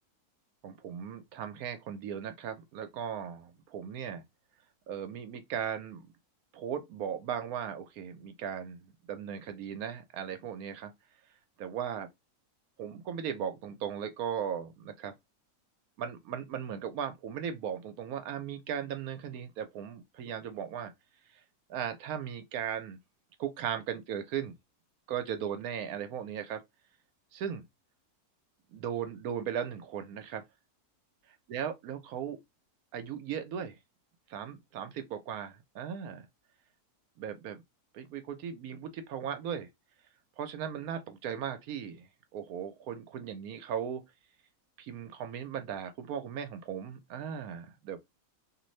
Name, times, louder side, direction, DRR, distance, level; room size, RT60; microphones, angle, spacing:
voice 1, 0.6-4.2 4.9-6.1 6.5-10.9 11.6-12.1 12.8-15.1 16.0-20.9 21.7-23.0 23.4-24.6 25.1-26.6 27.3-27.6 28.7-30.4 31.5-32.4 32.9-33.8 34.3-36.3 37.2-37.6 37.9-39.7 40.4-44.0 44.8-48.0, right 8 dB, 75° right, 1.0 m, -37 dB
2.8 x 2.6 x 3.1 m
omnidirectional pair, 1.6 m